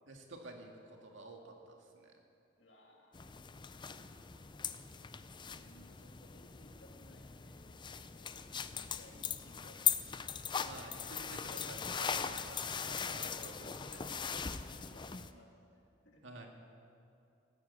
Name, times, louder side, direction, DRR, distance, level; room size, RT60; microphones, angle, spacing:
voice 1, 0.1-2.1 4.9-5.1 10.6-12.6 13.1-14.1 16.2-16.5, right 2 dB, 85° right, 2 dB, 1.9 m, -51 dB
voice 2, 2.6-3.3 3.7-4.5 5.4-8.3 8.7-10.2 12.1-13.8 14.7-16.5, left 1 dB, 70° left, 0 dB, 2.5 m, -62 dB
sound 1, 3.1-15.3, left 7 dB, 25° left, 0.5 m, -40 dB
14.5 x 10.0 x 8.4 m, 2.6 s
head